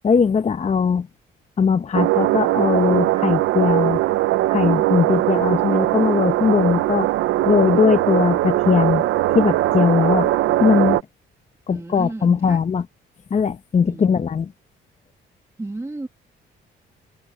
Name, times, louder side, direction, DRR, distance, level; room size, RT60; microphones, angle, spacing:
voice 1, 0.0-1.1 1.6-4.0 4.5-7.1 7.5-9.0 9.3-10.3 10.6-11.0 11.7-12.9 13.3-14.5, left 6 dB, 35° left, 0.9 m, -19 dB
sound 1, 1.9-11.0, right 16 dB, 85° right, 0.7 m, -20 dB
voice 2, 11.7-12.6 13.9-14.2 15.6-16.1, right 2 dB, 15° right, 1.6 m, -33 dB
cardioid pair, 90°, 20 cm